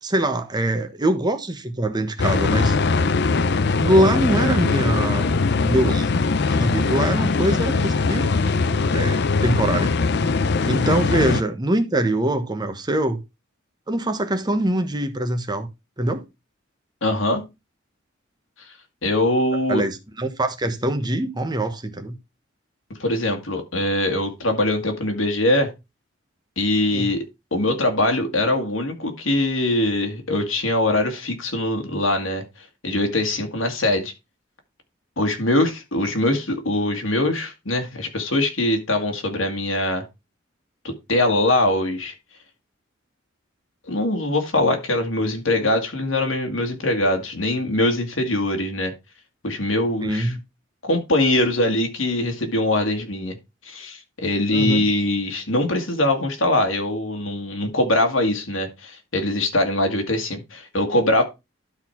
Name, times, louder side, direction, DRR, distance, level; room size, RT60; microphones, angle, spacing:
voice 1, 0.0-2.7 3.8-6.1 6.6-8.4 8.9-9.9 10.7-13.2 13.9-15.7 16.0-16.2 19.7-22.1 26.9-27.1 50.0-50.4 54.5-54.9, right 1 dB, 20° right, 1.2 m, -23 dB
sound 1, 2.2-11.4, left 4 dB, 60° left, 0.6 m, -21 dB
voice 2, 17.0-17.4 19.0-19.8 23.0-25.7 26.6-27.2 27.5-32.4 32.8-34.1 35.2-40.0 40.8-42.1 43.9-48.9 49.4-50.3 50.8-53.4 53.7-61.2, left 1 dB, 85° left, 2.0 m, -22 dB
12.0 x 4.2 x 4.5 m
head